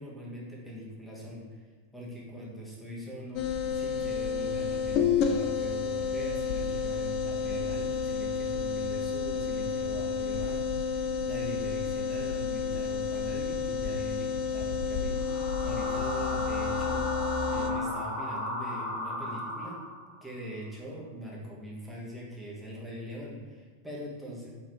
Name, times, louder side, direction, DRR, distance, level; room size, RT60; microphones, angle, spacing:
voice 1, 0.0-1.4 1.9-3.4 3.7-17.0 17.4-19.8 20.2-24.5, equal, ahead, -6 dB, 1.3 m, -42 dB
sound 1, 3.3-17.7, left 6 dB, 40° left, 0.4 m, -30 dB
sound 2, 15.1-20.2, left 1 dB, 65° left, 1.2 m, -35 dB
4.6 x 3.6 x 3.2 m, 1.5 s
figure-of-eight pair, 90°, 0 cm